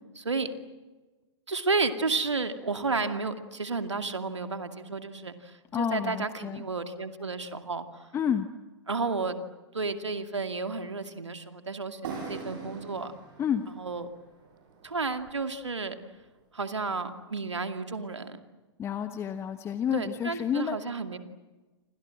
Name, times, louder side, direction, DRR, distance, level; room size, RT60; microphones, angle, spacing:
voice 1, 0.2-0.5 1.5-8.1 8.9-9.4 9.7-13.1 13.8-14.1 14.8-16.0 16.5-18.4 19.9-21.2, right 4 dB, 75° right, 7 dB, 2.3 m, -32 dB
voice 2, 5.7-6.6 8.1-8.5 13.4-13.6 18.8-20.8, left 8 dB, 15° left, 9 dB, 1.1 m, -29 dB
sound 1, 12.0-15.7, right 5 dB, 45° right, 7.6 m, -43 dB
29.5 x 26.0 x 7.7 m, 1.2 s
figure-of-eight pair, 110°, 15 cm